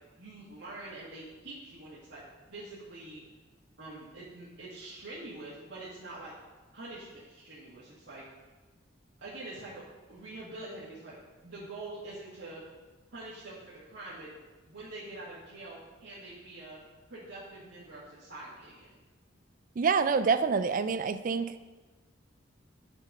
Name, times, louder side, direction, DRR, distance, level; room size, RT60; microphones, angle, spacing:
voice 1, 0.2-2.2 2.5-3.2 3.8-6.3 6.7-8.2 9.2-11.2 11.4-12.6 13.1-14.3 14.7-16.8 17.1-18.9, right 2 dB, 70° right, -9 dB, 1.8 m, -45 dB
voice 2, 19.8-21.5, right 5 dB, 45° right, 12 dB, 0.4 m, -27 dB
8.8 x 4.4 x 5.4 m, 1.2 s
head